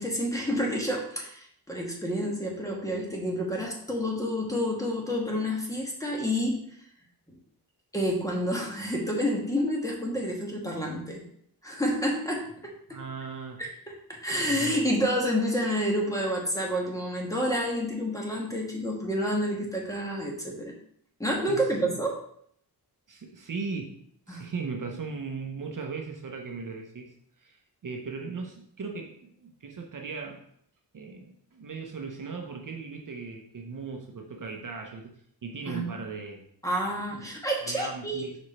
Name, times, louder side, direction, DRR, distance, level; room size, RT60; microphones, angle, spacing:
voice 1, 0.0-6.6 7.9-11.2 11.6-12.5 12.9-13.0 13.6-13.7 14.1-20.7 21.2-22.2 24.3-24.4 35.7-35.8 36.6-38.2, equal, 10° left, -1 dB, 1.4 m, -29 dB
voice 2, 12.9-13.6 14.3-14.8 21.5-21.7 23.1-24.0 24.3-30.4 30.9-35.1 35.4-36.4 37.1-37.3 37.7-38.4, right 4 dB, 50° right, 3 dB, 0.8 m, -38 dB
5.3 x 4.9 x 4.2 m, 0.65 s
wide cardioid pair, 150°, 40 cm